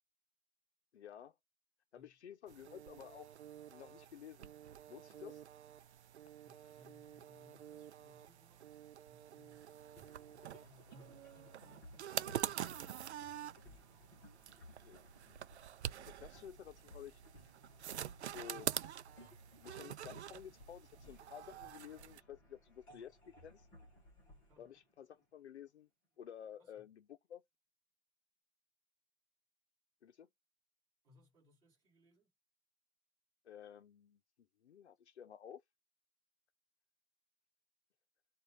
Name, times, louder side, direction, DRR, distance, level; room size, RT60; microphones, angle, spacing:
voice 1, 0.9-1.4 1.9-3.3 3.7-4.5 4.9-5.4 14.8-15.4 16.0-17.2 18.3-18.7 19.6-23.7 24.6-25.9 26.2-27.4 30.0-30.3 33.4-34.2 34.6-35.6, left 9 dB, 90° left, 0.6 m, -53 dB
sound 1, 2.5-22.2, right 10 dB, 90° right, 0.5 m, -47 dB
voice 2, 6.4-9.7 10.5-13.1 24.5-24.7 26.6-26.9 31.0-32.3, left 2 dB, 10° right, 2.1 m, -68 dB
sound 2, 10.0-25.6, equal, 10° left, 1.0 m, -61 dB
4.0 x 2.5 x 4.7 m
hypercardioid pair, 170°, 32 cm